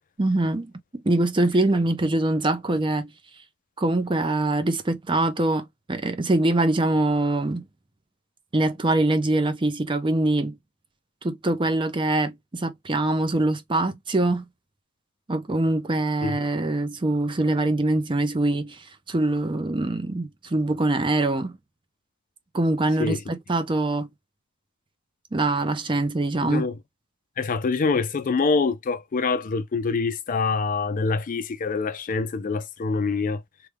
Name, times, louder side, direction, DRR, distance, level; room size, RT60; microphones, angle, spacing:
voice 1, 0.2-0.7 0.9-3.1 3.8-7.6 8.5-10.6 11.2-14.5 15.3-21.6 22.5-24.1 25.3-26.7, right 2 dB, 20° right, 0.5 m, -23 dB
voice 2, 26.4-26.7 27.4-33.4, left 4 dB, 40° left, 0.4 m, -25 dB
3.2 x 2.2 x 3.3 m
head